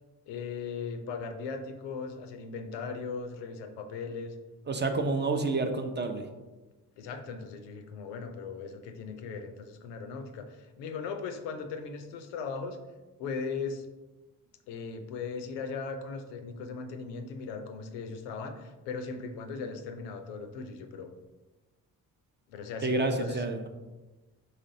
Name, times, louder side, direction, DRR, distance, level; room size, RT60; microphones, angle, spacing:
voice 1, 0.3-4.4 7.0-12.8 13.2-13.9 14.7-21.1 22.5-23.4, left 5 dB, 80° left, 6 dB, 0.5 m, -38 dB
voice 2, 4.7-6.3 22.8-23.7, right 3 dB, 25° right, 6 dB, 0.5 m, -29 dB
4.1 x 3.1 x 2.6 m, 1.1 s
hypercardioid pair, 45°, 43 cm